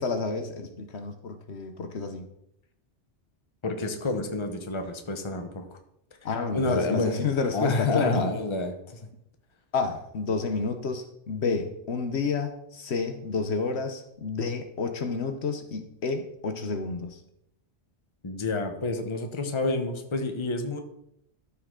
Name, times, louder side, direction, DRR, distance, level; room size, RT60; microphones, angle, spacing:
voice 1, 0.0-2.2 6.2-8.3 9.7-17.2, left 4 dB, 70° left, 7 dB, 1.1 m, -30 dB
voice 2, 3.6-5.8 6.5-7.2 7.5-9.0 18.2-20.8, left 2 dB, 25° left, 6 dB, 0.9 m, -29 dB
13.5 x 5.7 x 3.7 m, 0.78 s
omnidirectional pair, 1.2 m